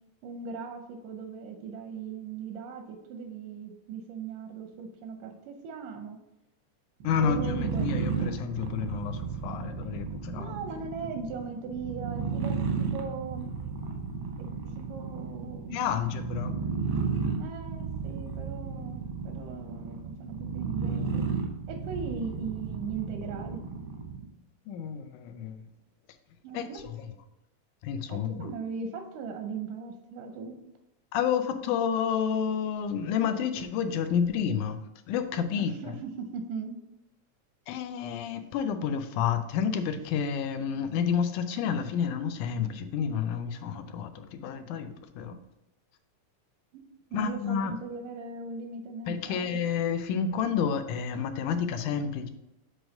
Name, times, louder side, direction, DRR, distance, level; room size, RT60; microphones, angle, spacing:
voice 1, 0.2-6.2 7.2-7.9 10.4-13.5 14.8-16.0 17.4-21.3 21.7-23.6 26.4-26.8 28.1-30.6 35.5-36.8 46.7-46.8 47.1-49.6, right 5 dB, 90° right, 4 dB, 2.2 m, -39 dB
voice 2, 7.0-10.5 15.7-16.6 24.7-25.6 26.5-26.7 27.0-27.1 27.8-28.5 31.1-34.8 35.1-35.9 37.7-45.4 47.1-47.8 49.1-52.3, left 7 dB, 85° left, 8 dB, 2.1 m, -30 dB
sound 1, 7.0-24.3, right 5 dB, 70° right, 1.2 m, -33 dB
7.7 x 3.1 x 5.2 m, 0.91 s
omnidirectional pair, 3.5 m